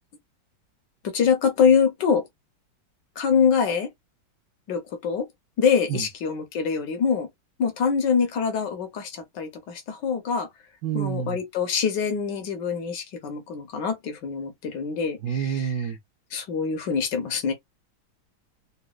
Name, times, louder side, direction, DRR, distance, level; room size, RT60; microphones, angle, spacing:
voice 1, 1.0-2.2 3.2-3.9 4.7-5.3 5.6-7.3 7.6-10.5 10.9-15.9 16.3-17.5, left 6 dB, 70° left, 1.4 m, -24 dB
voice 2, 10.8-11.4 15.2-16.0, right 8 dB, 75° right, 0.9 m, -28 dB
3.9 x 2.2 x 2.3 m
omnidirectional pair, 2.1 m